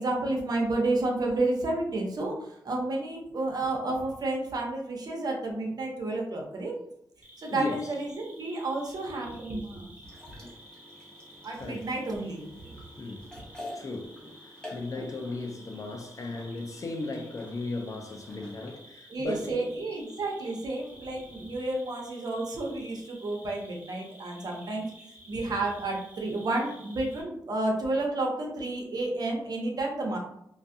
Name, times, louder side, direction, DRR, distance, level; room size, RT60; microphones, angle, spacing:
voice 1, 0.0-6.7 7.4-9.9 10.3-10.4 11.4-12.8 13.4-13.5 19.1-24.9 25.3-30.2, right 2 dB, 55° right, 0.7 m, -31 dB
Cricket, 7.2-27.2, equal, 20° right, 0.8 m, -53 dB
voice 2, 7.5-7.9 11.6-11.9 13.0-13.3 13.7-19.7, left 3 dB, 45° left, 0.4 m, -36 dB
sound 1, 10.0-18.8, left 1 dB, 10° left, 0.9 m, -48 dB
2.4 x 2.3 x 2.6 m
cardioid pair, 80°, 8 cm